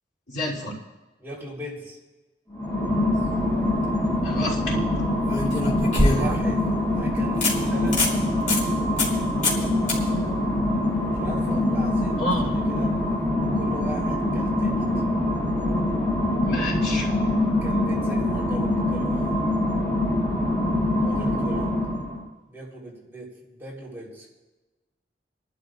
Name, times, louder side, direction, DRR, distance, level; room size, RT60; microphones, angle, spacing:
voice 1, 0.3-0.8 4.2-4.8 12.2-12.5 16.4-17.1, left 1 dB, 70° left, -5 dB, 3.1 m, -29 dB
voice 2, 1.2-2.0 5.9-6.7 7.0-8.0 11.1-12.9 13.5-15.0 17.6-19.4 21.0-21.7 22.5-24.3, equal, 15° right, -5 dB, 3.8 m, -39 dB
sound 1, 2.5-22.3, left 1 dB, 15° left, 2.1 m, -24 dB
sound 2, 3.5-3.9 5.3-6.6 7.0-7.1 7.4-7.5 7.9-8.1 8.5-8.6 9.0-9.2 9.4-9.6 9.9-10.0 13.1-13.2, left 2 dB, 45° left, 3.2 m, -23 dB
28.5 x 12.0 x 2.5 m, 1.1 s
head